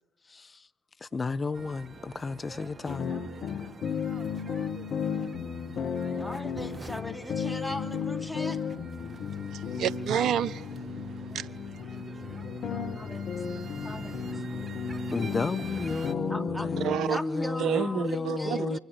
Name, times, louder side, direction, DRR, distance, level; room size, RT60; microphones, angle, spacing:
voice 1, 0.3-0.7 1.0-3.1 15.1-18.8, left 4 dB, 35° left, 1.0 m, -32 dB
sound 1, 1.5-16.1, right 4 dB, 35° right, 1.6 m, -46 dB
sound 2, 2.9-17.1, left 6 dB, 60° left, 1.9 m, -34 dB
voice 2, 6.2-8.6 12.9-13.3 13.8-14.2 16.3-16.7 17.1-18.8, left 1 dB, ahead, 3.1 m, -38 dB
voice 3, 9.5-10.6 11.3-11.5 16.8-17.2 17.6-18.8, right 9 dB, 65° right, 0.9 m, -29 dB
25.5 x 25.0 x 8.6 m
hypercardioid pair, 50°, 0 cm